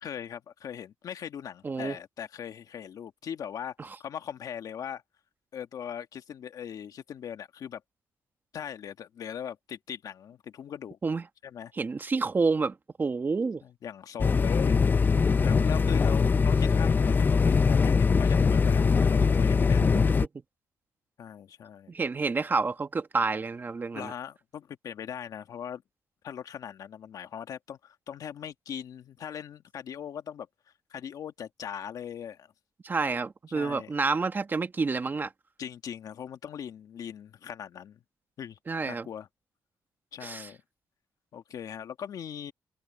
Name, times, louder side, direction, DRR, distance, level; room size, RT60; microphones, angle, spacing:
voice 1, 0.0-5.0 5.5-7.8 8.5-11.0 11.4-11.7 13.6-14.8 15.4-19.9 21.2-21.9 23.9-25.8 26.2-30.5 30.9-32.5 33.5-33.9 35.6-38.0 38.4-38.6 38.9-39.3 40.1-40.6 41.3-42.5, left 8 dB, 65° left, 1.7 m, -40 dB
voice 2, 1.6-2.0 11.0-11.2 11.8-13.6 21.9-24.1 32.8-35.3 38.7-39.1 40.2-40.5, right 4 dB, 30° right, 1.5 m, -29 dB
sound 1, 14.2-20.3, left 5 dB, 30° left, 0.5 m, -22 dB
cardioid pair, 120°, 7 cm